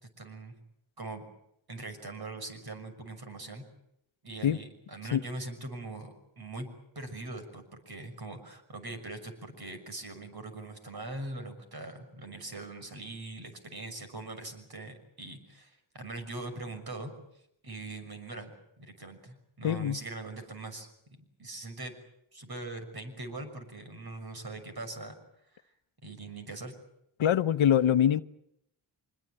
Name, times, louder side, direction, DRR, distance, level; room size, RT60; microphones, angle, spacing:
voice 1, 0.2-0.6 1.0-1.2 1.7-3.6 4.2-6.7 6.9-17.1 17.6-22.0 22.3-25.2 26.0-26.7, right 2 dB, 50° right, 6.2 m, -42 dB
voice 2, 19.6-20.0 27.2-28.2, left 9 dB, 70° left, 0.9 m, -24 dB
25.0 x 21.5 x 8.8 m
cardioid pair, 70°, 49 cm